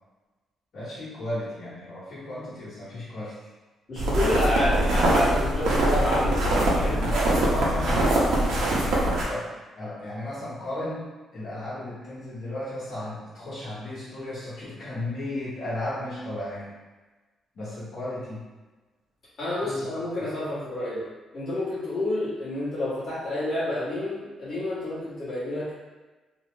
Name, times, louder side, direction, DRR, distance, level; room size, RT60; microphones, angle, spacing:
voice 1, 0.7-3.3 6.8-11.0 11.3-16.7 17.5-18.4 19.6-19.9 20.2-20.3, left 1 dB, 55° left, -11 dB, 1.1 m, -34 dB
voice 2, 3.9-7.0 19.4-21.1 21.3-25.7, left 1 dB, 35° left, -12 dB, 1.1 m, -29 dB
sound 1, 4.0-9.2, right 1 dB, 80° right, 0.7 m, -23 dB
2.7 x 2.0 x 3.2 m, 1.2 s
cardioid pair, 170°, 0 cm